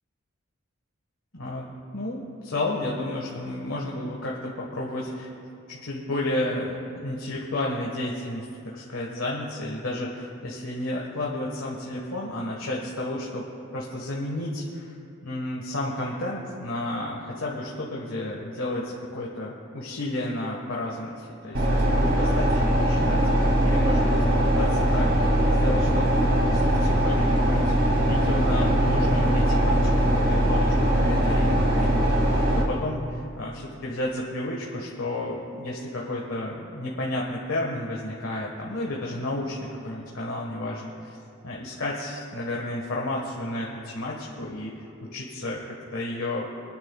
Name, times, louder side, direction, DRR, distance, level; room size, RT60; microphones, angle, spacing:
voice 1, 1.3-5.3 5.7-13.5 13.7-14.9 15.2-23.2 23.6-25.1 25.5-32.1 32.6-39.6 39.8-41.2 41.4-44.7 45.0-46.5, left 1 dB, 80° left, -3 dB, 1.4 m, -32 dB
sound 1, 21.5-32.6, equal, 60° right, 2.2 m, -21 dB
28.5 x 10.5 x 2.3 m, 2.5 s
head